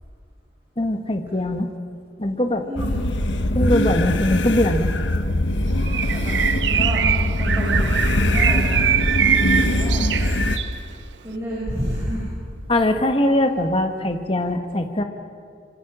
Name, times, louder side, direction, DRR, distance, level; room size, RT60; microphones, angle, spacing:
voice 1, 0.8-1.7 2.2-2.7 3.5-4.9 12.7-15.0, left 1 dB, 30° left, 5 dB, 1.6 m, -21 dB
voice 2, 2.6-3.1 5.9-6.4 6.7-7.1 7.4-7.9 8.2-8.7 9.6-10.1 11.2-12.2, equal, 15° right, -6 dB, 5.8 m, -29 dB
sound 1, 2.8-10.6, left 1 dB, 90° left, 1.4 m, -22 dB
Thunder / Rain, 5.3-13.0, equal, 30° right, 5.6 m, -41 dB
Bird, 5.9-10.8, right 9 dB, 80° right, 0.6 m, -23 dB
26.5 x 24.0 x 6.3 m, 2.2 s
head